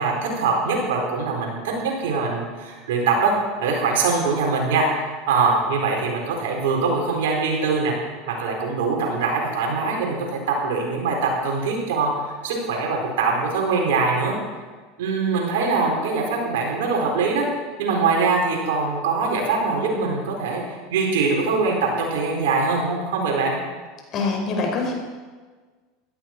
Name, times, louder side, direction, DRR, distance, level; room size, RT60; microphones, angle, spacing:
voice 1, 0.0-3.3 3.6-7.9 8.3-12.1 12.4-14.3 15.0-17.5 17.8-20.6 20.9-23.5, right 4 dB, 80° right, 0 dB, 4.4 m, -23 dB
voice 2, 24.1-24.9, left 3 dB, 45° left, 1 dB, 5.0 m, -24 dB
16.5 x 13.5 x 4.6 m, 1.4 s
hypercardioid pair, 100°, 0 cm